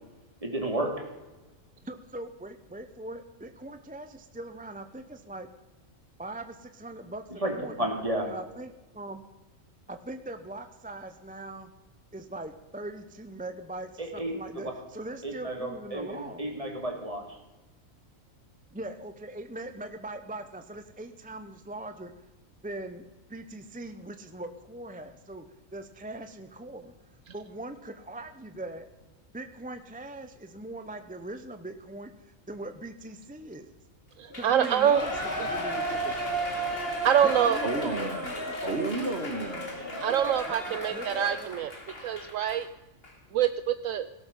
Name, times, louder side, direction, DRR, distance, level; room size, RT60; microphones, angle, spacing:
voice 1, 0.4-1.1 7.3-8.3 14.0-14.7 15.2-17.4, right 1 dB, 25° right, 2 dB, 2.9 m, -32 dB
voice 2, 1.8-5.5 6.2-7.9 8.3-9.2 9.9-11.7 12.1-16.5 18.7-22.1 22.6-23.0 23.3-25.4 25.7-26.9 27.3-28.9 29.3-33.7 34.3-36.2 37.2-38.5 40.9-41.5, right 1 dB, 10° right, 8 dB, 0.7 m, -41 dB
voice 3, 34.2-35.0 37.0-37.6 40.0-41.7 42.0-42.6 43.3-44.1, right 9 dB, 70° right, 12 dB, 1.0 m, -25 dB
Shout / Cheering, 34.3-42.6 43.0-43.1, right 1 dB, 45° left, 2.9 m, -34 dB
voice 4, 37.4-38.3 38.6-40.2 41.1-41.2, right 2 dB, 50° right, 7 dB, 1.8 m, -33 dB
17.5 x 12.5 x 5.5 m, 1.1 s
omnidirectional pair, 1.4 m